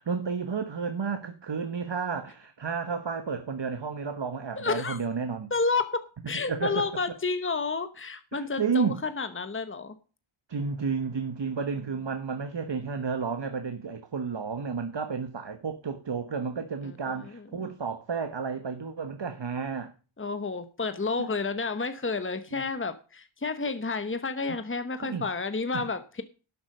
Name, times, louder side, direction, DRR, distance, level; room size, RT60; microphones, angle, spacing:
voice 1, 0.0-5.5 6.5-6.9 8.3-9.0 10.5-19.9 21.2-21.3 25.0-25.3 25.7-25.9, right 5 dB, 60° right, 1.3 m, -31 dB
voice 2, 4.6-5.0 5.5-10.0 16.8-17.4 20.2-26.2, left 4 dB, 25° left, 1.1 m, -30 dB
12.0 x 7.8 x 5.4 m
wide cardioid pair, 85°, 49 cm